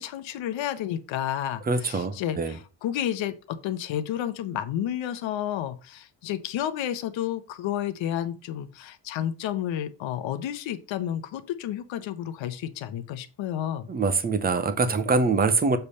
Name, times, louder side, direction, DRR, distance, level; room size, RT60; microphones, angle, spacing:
voice 1, 0.0-13.9, left 11 dB, 75° left, 11 dB, 0.9 m, -31 dB
voice 2, 1.7-2.6 13.9-15.8, right 4 dB, 20° right, 10 dB, 0.7 m, -24 dB
6.9 x 3.3 x 5.5 m, 0.33 s
cardioid pair, 150°, 46 cm